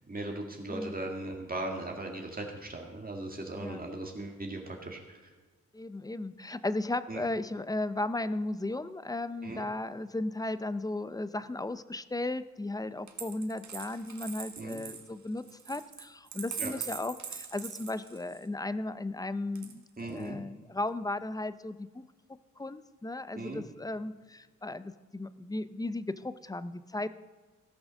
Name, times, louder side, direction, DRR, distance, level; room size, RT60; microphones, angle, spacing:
voice 1, 0.1-5.2 7.1-7.2 9.4-9.6 14.6-14.8 16.6-16.7 20.0-20.4 23.3-23.6, right 2 dB, 30° right, 0 dB, 2.0 m, -38 dB
voice 2, 5.7-22.0 22.6-27.1, left 2 dB, 10° left, 14 dB, 0.6 m, -35 dB
Coin (dropping), 13.1-18.5 19.5-20.3, right 7 dB, 65° right, 1.7 m, -42 dB
16.5 x 6.1 x 6.3 m, 1.4 s
cardioid pair, 65°, 31 cm